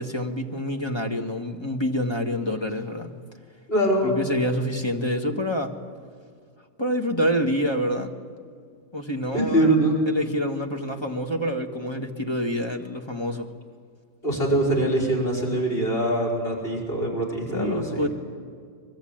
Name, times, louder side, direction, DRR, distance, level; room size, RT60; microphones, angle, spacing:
voice 1, 0.0-3.2 4.0-5.8 6.8-8.1 8.9-9.7 10.1-13.5 17.5-18.1, equal, 15° left, 3 dB, 1.6 m, -27 dB
voice 2, 3.7-4.1 9.3-10.0 14.2-18.1, right 1 dB, 35° left, -3 dB, 5.4 m, -23 dB
24.0 x 23.5 x 8.9 m, 2.1 s
omnidirectional pair, 1.7 m